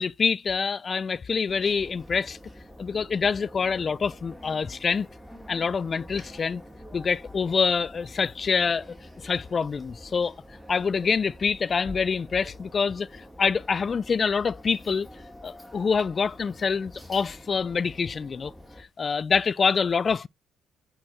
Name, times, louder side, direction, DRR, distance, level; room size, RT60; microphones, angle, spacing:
voice 1, 0.0-2.4 2.8-5.1 5.5-6.6 6.9-8.9 9.2-10.3 10.7-15.1 15.4-18.5 19.0-20.3, left 5 dB, 40° left, 0.4 m, -26 dB
sound 1, 1.5-18.8, equal, 5° left, 2.0 m, -47 dB
8.6 x 4.5 x 4.8 m
cardioid pair, 80°, 0 cm